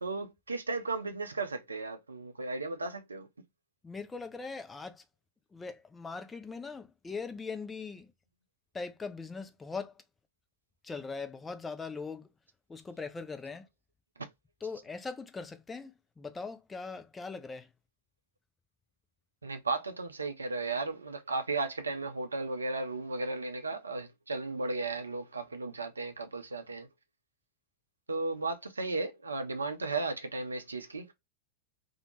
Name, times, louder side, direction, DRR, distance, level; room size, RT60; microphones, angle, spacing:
voice 1, 0.0-3.3 19.4-26.9 28.1-31.1, right 3 dB, 75° right, 0.5 m, -35 dB
voice 2, 3.8-5.0 5.5-8.1 8.7-10.0 10.8-12.3 12.7-13.7 14.6-17.7, left 4 dB, 15° left, 0.4 m, -40 dB
2.6 x 2.1 x 2.9 m
figure-of-eight pair, 90°, 0 cm